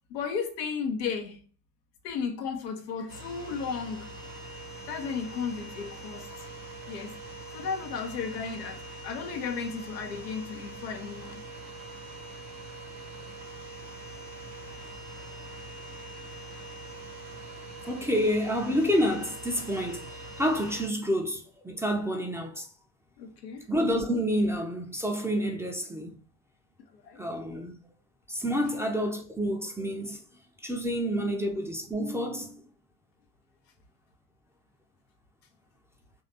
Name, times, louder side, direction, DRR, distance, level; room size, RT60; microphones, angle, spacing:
voice 1, 0.1-1.4 2.0-4.1 4.9-6.5 6.9-7.2 7.5-11.4 14.6-14.8 16.3-16.4 23.2-23.7 26.9-27.2, left 6 dB, 75° left, 0.8 m, -34 dB
sound 1, 3.1-20.9, right 2 dB, 85° right, 1.0 m, -43 dB
voice 2, 17.8-22.7 23.7-26.2 27.1-27.7 28.3-30.2 30.6-32.6, equal, 5° right, 0.7 m, -29 dB
3.2 x 2.8 x 4.2 m
figure-of-eight pair, 50°, 49 cm